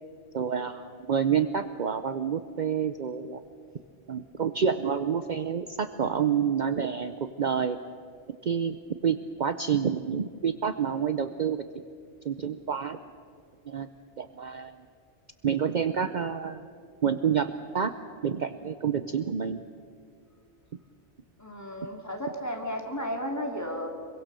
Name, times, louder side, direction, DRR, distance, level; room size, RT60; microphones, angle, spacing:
voice 1, 0.3-3.4 4.1-7.8 8.4-8.8 9.0-11.6 12.2-13.0 13.7-13.9 14.2-14.8 15.4-16.6 17.0-17.9 18.2-19.6, right 7 dB, 50° right, 10 dB, 0.8 m, -28 dB
voice 2, 21.4-23.9, equal, 15° left, 2 dB, 2.6 m, -33 dB
25.5 x 23.0 x 6.8 m, 2.2 s
omnidirectional pair, 1.1 m